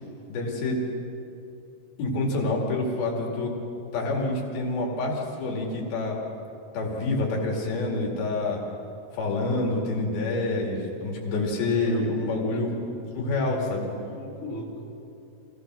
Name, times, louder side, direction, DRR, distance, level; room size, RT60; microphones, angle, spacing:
voice 1, 0.3-0.9 2.0-3.6 3.9-6.2 6.7-8.6 9.1-12.7 13.1-13.9, left 2 dB, 90° left, 0 dB, 4.4 m, -27 dB
voice 2, 11.7-12.1 12.4-13.0 13.4-14.9, left 1 dB, 20° left, -3 dB, 3.3 m, -40 dB
26.5 x 17.0 x 6.2 m, 2.7 s
omnidirectional pair, 4.2 m